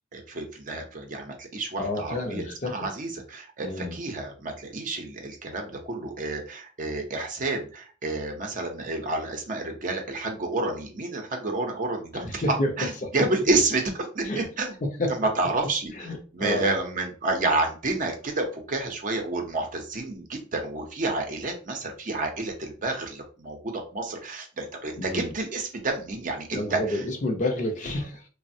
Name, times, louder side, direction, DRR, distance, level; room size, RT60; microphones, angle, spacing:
voice 1, 0.1-12.4 12.8-14.7 15.1-27.0, right 2 dB, 45° right, 3 dB, 0.6 m, -30 dB
voice 2, 1.8-2.9 3.6-4.0 12.2-12.7 13.0-13.1 14.2-14.5 14.8-15.2 16.0-16.8 25.0-25.3 26.5-28.3, left 1 dB, 40° left, 3 dB, 0.5 m, -29 dB
3.2 x 2.0 x 2.6 m, 0.38 s
head